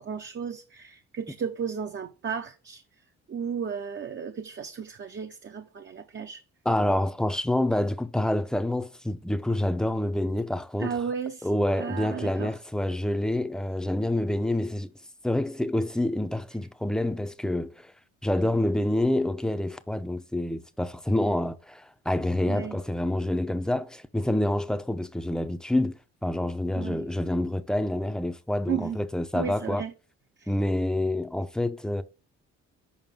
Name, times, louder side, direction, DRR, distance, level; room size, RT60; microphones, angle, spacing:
voice 1, 0.0-2.8 3.3-6.4 10.8-11.5 11.8-12.5 22.5-22.8 26.8-27.0 28.7-29.0 29.3-29.9 30.4-30.5, right 7 dB, 40° right, 0.8 m, -34 dB
voice 2, 6.6-11.0 11.4-14.9 15.2-17.9 18.2-29.8 30.5-32.0, left 1 dB, ahead, 0.6 m, -27 dB
7.2 x 5.2 x 3.6 m
cardioid pair, 90°, 30 cm